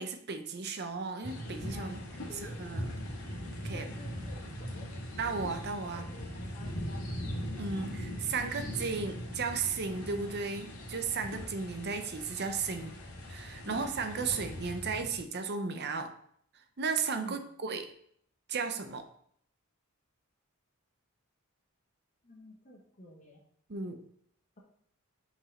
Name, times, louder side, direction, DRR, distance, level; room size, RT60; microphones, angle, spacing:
voice 1, 0.0-2.0 2.4-2.8 3.6-3.9 5.2-6.1 7.6-12.9 13.3-16.1 16.8-17.9 18.5-19.0 23.7-24.0, right 4 dB, 50° right, 7 dB, 0.6 m, -35 dB
sound 1, 1.2-15.2, equal, 90° left, 1.7 m, -40 dB
voice 2, 1.7-2.6 3.7-5.0 5.8-7.1 12.7-13.0 13.6-13.9 14.3-14.4 17.2-17.4 22.2-23.4, left 1 dB, 35° left, -1 dB, 1.2 m, -51 dB
5.3 x 5.0 x 4.2 m, 0.65 s
head